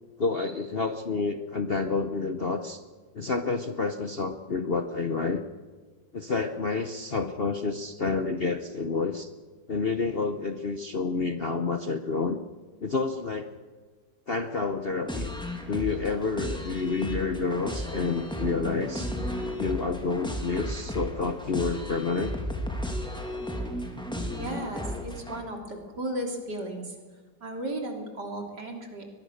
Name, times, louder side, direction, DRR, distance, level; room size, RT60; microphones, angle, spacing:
voice 1, 0.2-2.8 3.1-5.4 6.1-9.3 9.7-12.4 12.8-13.5 14.3-15.3 15.7-19.1 19.6-22.3, left 4 dB, 40° left, 7 dB, 0.9 m, -29 dB
sound 1, 15.1-25.4, equal, ahead, 2.7 m, -34 dB
voice 2, 24.4-27.0 27.4-29.1, right 1 dB, 65° right, 2 dB, 4.0 m, -35 dB
23.0 x 21.5 x 6.6 m, 1.5 s
omnidirectional pair, 2.0 m